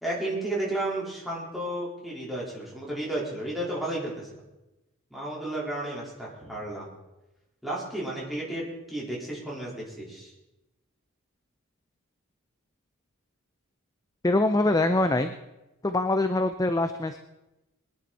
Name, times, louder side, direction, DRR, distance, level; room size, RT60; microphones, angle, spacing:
voice 1, 0.0-4.4 5.1-6.9 7.6-10.3, right 1 dB, ahead, -6 dB, 4.2 m, -33 dB
voice 2, 14.2-15.3 15.8-17.2, left 2 dB, 15° left, 8 dB, 0.6 m, -24 dB
22.5 x 10.5 x 4.2 m, 1.0 s
head